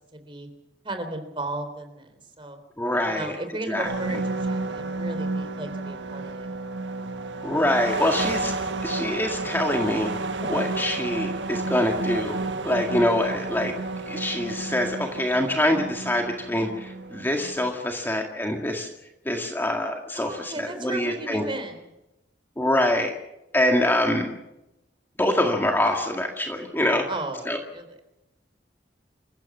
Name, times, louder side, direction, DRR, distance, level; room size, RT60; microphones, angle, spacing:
voice 1, 0.1-0.5 0.8-2.6 3.1-6.6 20.2-21.8 27.1-28.0, right 2 dB, 30° right, 7 dB, 3.8 m, -35 dB
voice 2, 2.8-3.4 3.7-3.9 7.4-8.5 8.8-10.1 10.4-13.7 14.1-18.9 19.3-21.4 22.6-23.1 23.5-24.3 25.2-27.1 27.5-27.6, left 1 dB, 10° left, 2 dB, 1.9 m, -25 dB
sound 1, 3.8-17.7, right 3 dB, 85° right, 1.5 m, -31 dB
27.5 x 15.5 x 7.2 m, 0.92 s
head